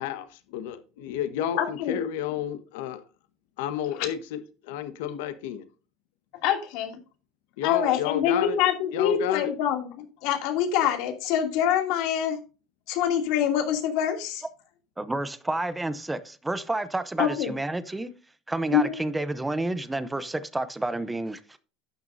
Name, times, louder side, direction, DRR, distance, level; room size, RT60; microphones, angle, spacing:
voice 1, 0.0-3.0 3.6-5.7 7.6-8.6 8.9-9.5, left 10 dB, 85° left, 1.3 m, -31 dB
voice 2, 1.6-2.0 6.4-7.0 7.6-12.4 12.9-14.4 17.2-17.5 18.7-18.9, left 9 dB, 55° left, 2.6 m, -25 dB
voice 3, 15.0-18.1 18.5-21.6, right 2 dB, 5° right, 0.6 m, -30 dB
12.0 x 9.2 x 2.7 m
cardioid pair, 180°, 0 cm